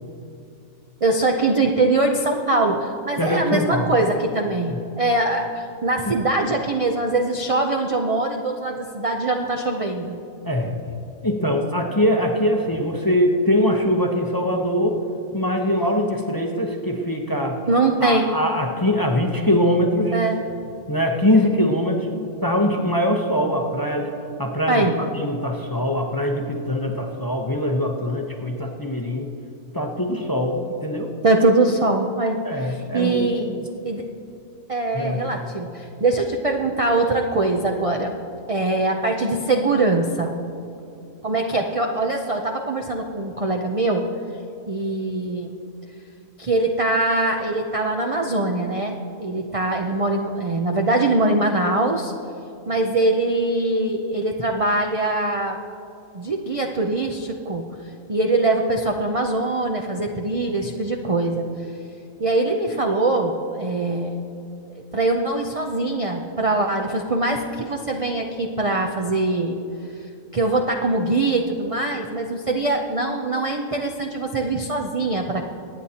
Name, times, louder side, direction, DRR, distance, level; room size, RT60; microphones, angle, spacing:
voice 1, 1.0-10.2 17.7-18.3 20.1-20.4 24.7-24.9 31.2-33.5 33.8-34.1 34.7-38.2 38.5-40.3 41.2-44.1 44.7-45.6 46.4-52.1 52.7-55.6 56.1-57.7 58.1-61.5 62.2-64.2 64.9-69.6 70.3-75.4, right 2 dB, 40° right, 2 dB, 0.5 m, -22 dB
voice 2, 3.2-3.9 4.7-4.8 6.0-6.2 10.4-10.7 11.2-15.0 15.3-17.6 18.0-20.2 20.9-22.1 22.4-29.3 29.7-31.1 32.4-33.7 34.9-35.4, equal, 20° left, 1 dB, 0.7 m, -22 dB
24.5 x 9.2 x 2.9 m, 2.7 s
omnidirectional pair, 1.5 m